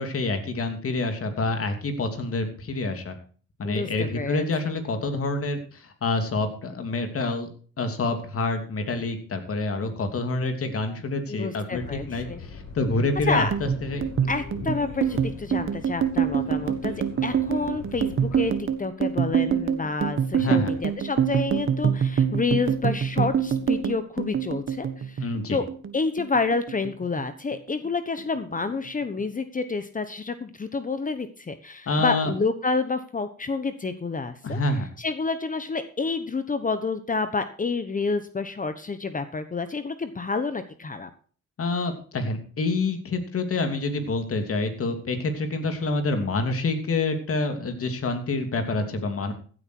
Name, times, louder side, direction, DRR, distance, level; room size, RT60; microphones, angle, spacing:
voice 1, 0.0-3.2 3.6-7.5 7.8-14.0 20.4-20.7 25.2-25.6 31.9-32.3 34.4-34.9 41.6-49.3, left 2 dB, 50° left, 6 dB, 2.9 m, -27 dB
voice 2, 3.6-4.8 11.3-12.4 13.2-13.5 14.3-16.9 17.2-25.7 25.9-34.6 35.0-41.1, left 4 dB, 25° left, 10 dB, 1.1 m, -29 dB
sound 1, 11.7-18.6, left 4 dB, 75° left, 3.9 m, -40 dB
sound 2, 13.3-25.9 26.2-27.2 27.5-27.9 28.2-28.9, right 8 dB, 45° right, 1.5 m, -25 dB
15.5 x 8.5 x 4.6 m, 0.43 s
cardioid pair, 90°, 30 cm